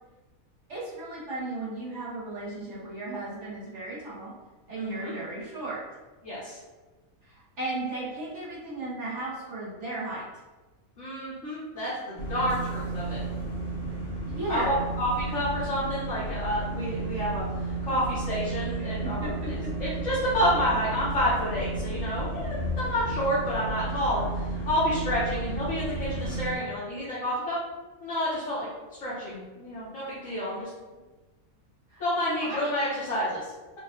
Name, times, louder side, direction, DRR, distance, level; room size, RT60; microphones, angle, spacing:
voice 1, 0.7-4.3 4.7-5.8 7.6-10.2 14.3-14.7 18.8-19.7 31.9-32.0 32.3-32.7, right 2 dB, 55° right, -8 dB, 1.4 m, -35 dB
voice 2, 4.8-5.1 6.2-6.6 11.0-13.2 14.5-19.5 19.8-27.6 28.0-28.7 29.0-30.7 32.0-33.4, equal, 60° left, -11 dB, 1.4 m, -29 dB
sound 1, 12.2-26.5, right 2 dB, 10° left, 0.8 m, -33 dB
5.3 x 2.5 x 2.4 m, 1.2 s
omnidirectional pair, 1.5 m